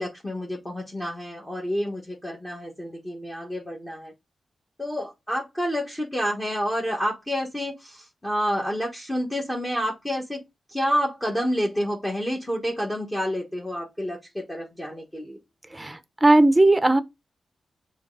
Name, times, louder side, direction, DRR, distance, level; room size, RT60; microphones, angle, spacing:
voice 1, 0.0-4.1 4.8-10.4 10.7-15.4, equal, 15° left, 1.5 m, -29 dB
voice 2, 15.7-17.0, right 2 dB, 15° right, 0.8 m, -18 dB
7.1 x 3.3 x 3.9 m
wide cardioid pair, 105°, 0 cm